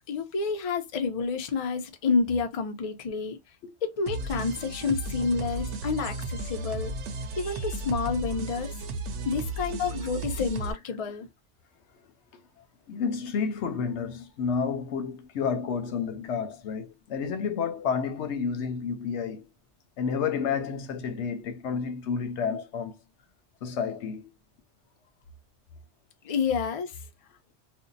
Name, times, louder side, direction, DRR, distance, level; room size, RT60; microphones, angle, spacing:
voice 1, 0.1-3.4 3.8-6.9 7.4-8.7 9.2-11.3 26.2-27.0, left 5 dB, 40° left, 0.5 m, -29 dB
sound 1, 4.1-10.7, right 3 dB, 90° right, 0.9 m, -34 dB
voice 2, 12.0-12.4 12.9-19.5 20.0-22.9 23.6-24.3, left 6 dB, 80° left, 0.9 m, -30 dB
2.6 x 2.2 x 3.8 m
omnidirectional pair, 1.2 m